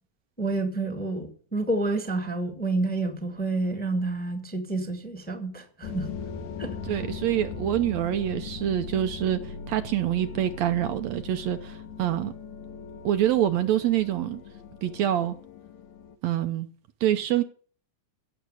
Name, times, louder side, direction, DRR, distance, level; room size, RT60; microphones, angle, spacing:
voice 1, 0.4-6.1 6.6-6.7, right 2 dB, 5° left, 1.5 m, -29 dB
sound 1, 5.8-16.2, left 5 dB, 70° left, 2.5 m, -39 dB
voice 2, 6.8-12.3 13.0-14.4 14.8-15.4 16.2-16.7 17.0-17.4, right 11 dB, 70° right, 1.9 m, -26 dB
16.0 x 7.4 x 8.2 m
omnidirectional pair, 3.5 m